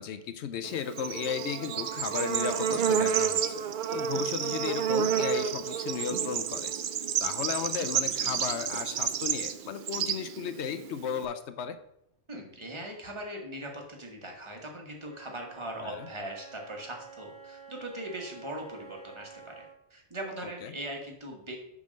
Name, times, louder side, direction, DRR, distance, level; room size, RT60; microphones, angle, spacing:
voice 1, 0.0-6.7 7.2-11.8 15.8-16.0, left 8 dB, 75° left, 10 dB, 0.9 m, -35 dB
Bird / Insect, 0.6-11.2, right 8 dB, 60° right, 0.6 m, -30 dB
voice 2, 12.3-21.7, right 1 dB, 25° right, 1 dB, 1.5 m, -40 dB
Wind instrument woodwind instrument, 15.0-19.8, right 5 dB, 45° left, 1.2 m, -50 dB
7.3 x 3.8 x 6.4 m, 0.78 s
omnidirectional pair, 1.2 m